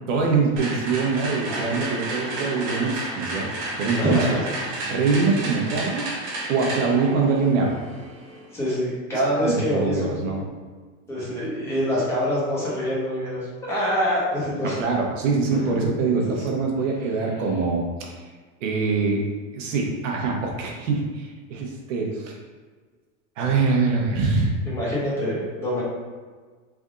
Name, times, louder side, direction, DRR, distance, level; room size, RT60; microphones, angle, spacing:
voice 1, 0.1-3.5 3.8-4.4 4.9-6.1 6.5-7.8 9.3-10.5 14.8-18.1 18.6-19.2 19.5-22.4 23.4-24.6, right 4 dB, 65° right, 0 dB, 1.0 m, -24 dB
sound 1, 0.6-8.5, right 2 dB, 35° right, 0.6 m, -32 dB
voice 2, 4.0-4.4 8.5-10.3 11.1-14.8 15.5-15.7 16.1-16.6 24.7-25.8, equal, 5° left, -9 dB, 0.9 m, -25 dB
3.5 x 2.6 x 3.6 m, 1.4 s
supercardioid pair, 170°, 40 cm